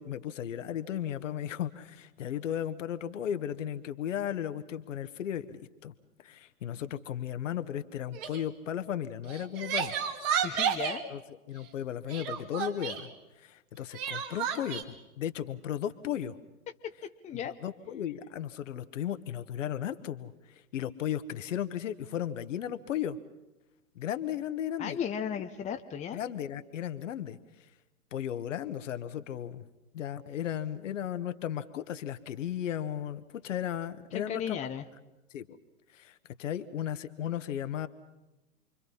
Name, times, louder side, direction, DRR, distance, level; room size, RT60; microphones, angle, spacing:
voice 1, 0.0-5.9 6.2-9.9 11.1-11.2 11.5-13.1 13.4-16.4 17.4-23.2 23.9-25.0 26.1-27.4 28.1-29.7 29.9-34.6 35.3-35.5 35.9-37.9, left 10 dB, 55° left, 11 dB, 1.4 m, -35 dB
Crying sobbing, 8.1-8.4 9.3-11.0 12.1-13.1 13.9-14.8, right 8 dB, 40° right, 2.6 m, -31 dB
voice 2, 10.4-11.0 16.8-17.5 24.8-26.2 34.1-34.8, left 8 dB, 15° left, 6 dB, 1.0 m, -35 dB
28.5 x 24.0 x 5.7 m, 1.0 s
figure-of-eight pair, 105°, 44 cm